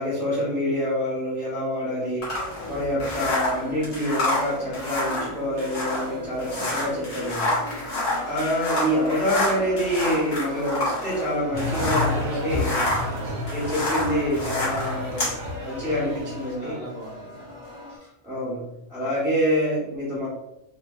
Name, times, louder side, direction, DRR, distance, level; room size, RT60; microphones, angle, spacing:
voice 1, 0.0-2.3 2.7-7.6 8.2-12.8 13.5-15.3 15.6-16.8 18.0-18.6 18.9-20.3, equal, ahead, -8 dB, 0.7 m, -26 dB
voice 2, 1.8-2.3 7.8-8.1 12.7-13.3 16.6-17.6, right 1 dB, 25° left, -6 dB, 1.0 m, -43 dB
sound 1, 2.2-12.2 12.5-15.4, left 1 dB, 85° left, 1.7 m, -28 dB
sound 2, 2.2-18.0, left 1 dB, 40° right, 0.4 m, -39 dB
sound 3, 11.5-16.5, left 2 dB, 65° right, 1.1 m, -31 dB
3.7 x 2.2 x 2.5 m, 0.88 s
omnidirectional pair, 1.6 m